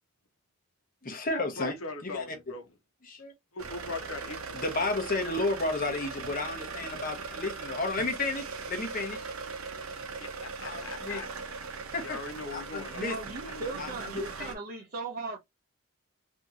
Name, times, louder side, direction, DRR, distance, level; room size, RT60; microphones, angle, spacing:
voice 1, 1.0-1.8 2.0-2.4 3.0-3.3 4.5-9.3 10.6-11.2 11.9-12.2 12.5-13.2 13.8-14.5, left 2 dB, 40° left, 0.8 m, -32 dB
voice 2, 1.6-2.6 3.5-4.6 10.2-11.3 12.0-13.1 13.4-13.8, left 3 dB, 80° left, 0.9 m, -40 dB
sound 1, 3.6-14.6, right 4 dB, 80° right, 0.7 m, -40 dB
voice 3, 12.9-15.4, right 3 dB, 40° right, 0.6 m, -38 dB
2.9 x 2.7 x 2.4 m
head